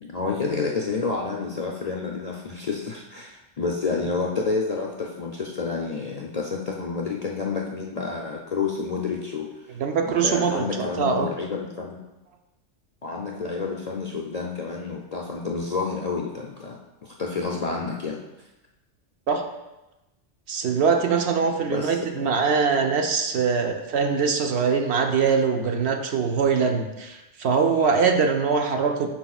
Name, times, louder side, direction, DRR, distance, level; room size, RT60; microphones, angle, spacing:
voice 1, 0.0-9.6 10.0-12.0 13.0-18.2 21.6-22.3, left 4 dB, 50° left, -1 dB, 0.5 m, -29 dB
voice 2, 9.8-11.3 19.3-19.4 20.5-29.1, right 5 dB, 65° right, 4 dB, 0.9 m, -23 dB
10.5 x 4.3 x 2.4 m, 1.0 s
omnidirectional pair, 1.2 m